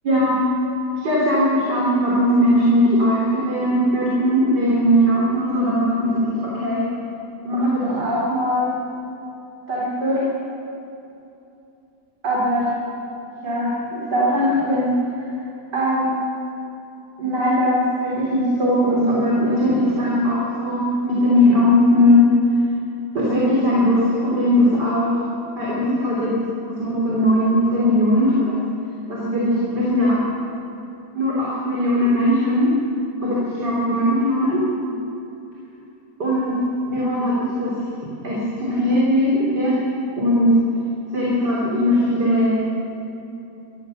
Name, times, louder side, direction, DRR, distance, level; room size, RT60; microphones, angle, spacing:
voice 1, 0.0-0.4 1.0-6.9 7.4-8.8 9.7-10.2 12.2-12.7 13.4-14.9 15.7-16.1 17.2-22.3 23.1-25.2 25.6-26.4 26.7-28.6 29.1-30.2 31.1-32.7 33.2-34.6 36.2-36.5 36.9-37.7 38.2-39.8 40.2-40.5 41.1-42.6, left 1 dB, 85° right, -5 dB, 4.3 m, -19 dB
26.0 x 15.5 x 6.5 m, 2.9 s
omnidirectional pair, 1.8 m